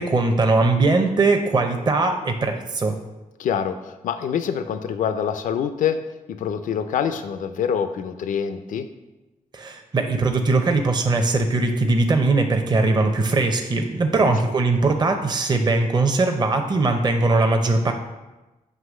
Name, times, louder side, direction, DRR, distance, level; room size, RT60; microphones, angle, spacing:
voice 1, 0.0-2.9 9.5-17.9, right 3 dB, 30° right, 4 dB, 0.7 m, -20 dB
voice 2, 3.4-6.0 6.3-8.9 14.2-14.3, left 8 dB, 75° left, 10 dB, 0.5 m, -25 dB
7.6 x 3.0 x 6.2 m, 1.1 s
cardioid pair, 100°, 14 cm